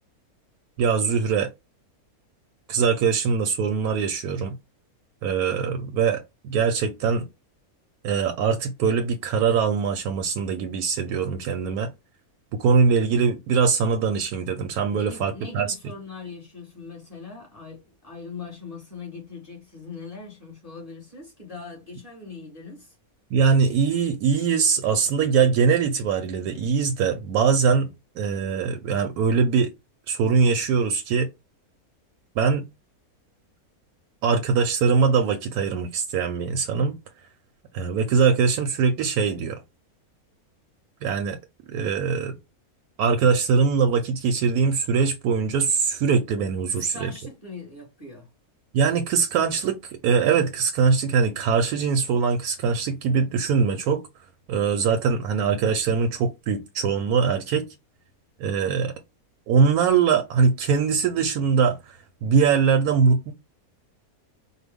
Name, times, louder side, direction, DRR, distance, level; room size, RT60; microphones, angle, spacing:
voice 1, 0.8-1.5 2.7-4.6 5.2-7.3 8.0-11.9 12.5-15.7 23.3-29.7 30.1-31.3 32.4-32.7 34.2-37.0 37.7-39.6 41.0-41.4 41.7-42.3 43.0-47.1 48.7-54.0 54.5-57.7 58.4-58.9 59.5-63.3, right 5 dB, 85° right, 1.1 m, -22 dB
voice 2, 14.9-23.0 46.7-48.3, left 4 dB, 25° left, 1.9 m, -41 dB
4.6 x 2.3 x 3.5 m
omnidirectional pair, 1.6 m